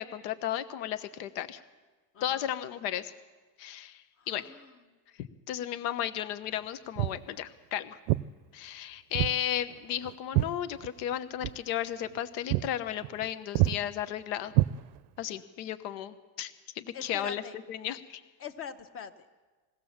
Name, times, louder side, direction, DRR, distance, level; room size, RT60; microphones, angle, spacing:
voice 1, 0.0-1.6 2.2-3.1 3.6-4.4 5.2-8.0 8.5-14.5 15.2-17.4 17.7-18.2, left 11 dB, 85° left, 12 dB, 1.2 m, -34 dB
voice 2, 2.1-2.5 4.2-5.0 16.9-17.6 18.4-19.3, left 6 dB, 30° left, 11 dB, 0.9 m, -43 dB
Walk footsteps, 7.0-7.3 8.1-8.3 9.1-9.4 9.7-11.1 11.4-11.6 12.0-12.2 12.5-12.7 13.0-13.3 13.6-13.8 14.5-15.2, right 19 dB, 65° right, 0.6 m, -27 dB
21.5 x 17.0 x 7.3 m, 1.3 s
cardioid pair, 165°, 48 cm